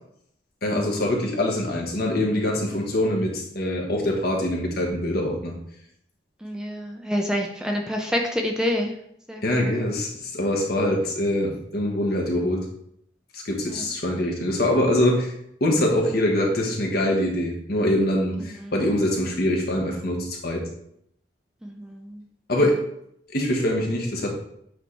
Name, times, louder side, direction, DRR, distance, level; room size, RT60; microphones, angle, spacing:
voice 1, 0.6-5.5 9.4-12.6 13.3-15.3 15.6-20.7 22.5-22.8 23.3-24.3, left 1 dB, 60° left, 0 dB, 1.5 m, -24 dB
voice 2, 6.4-9.0 9.3-9.9 13.7-13.8 18.6-18.7 21.6-22.2, equal, 5° right, 1 dB, 0.5 m, -28 dB
8.3 x 3.3 x 4.1 m, 0.72 s
head